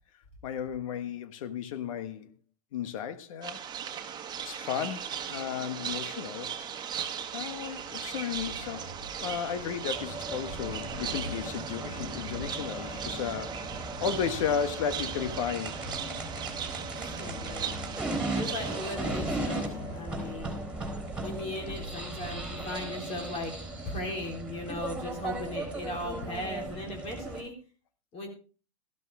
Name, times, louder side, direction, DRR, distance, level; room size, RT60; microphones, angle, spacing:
voice 1, 0.4-2.3 2.7-3.6 4.4-6.5 7.0-8.9 9.2-13.5 14.0-15.8 20.2-20.3, left 8 dB, 65° left, 1.4 m, -34 dB
sound 1, 3.4-19.0, right 8 dB, 25° right, 1.6 m, -38 dB
sound 2, 6.3-22.9, left 2 dB, 50° left, 7.0 m, -44 dB
sound 3, 9.9-27.4, right 2 dB, 5° right, 4.2 m, -37 dB
voice 2, 17.0-20.5 21.2-23.5 23.9-27.5 28.1-28.3, left 1 dB, 35° left, 3.6 m, -38 dB
13.5 x 12.0 x 3.5 m
hypercardioid pair, 115°, 18 cm